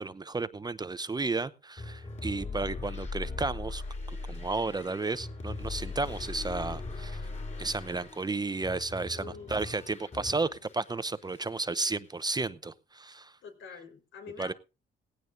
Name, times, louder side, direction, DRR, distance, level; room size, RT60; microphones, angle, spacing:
voice 1, 0.0-3.8 4.3-7.3 7.6-13.3 14.4-14.5, right 3 dB, 20° right, 16 dB, 0.7 m, -33 dB
sound 1, 1.8-10.9 11.2-12.1, left 3 dB, 35° left, 5.0 m, -40 dB
voice 2, 2.3-3.2 9.1-10.2 13.4-14.5, left 6 dB, 75° left, 6 dB, 4.3 m, -48 dB
18.0 x 16.0 x 2.6 m, 0.31 s
cardioid pair, 90°, 20 cm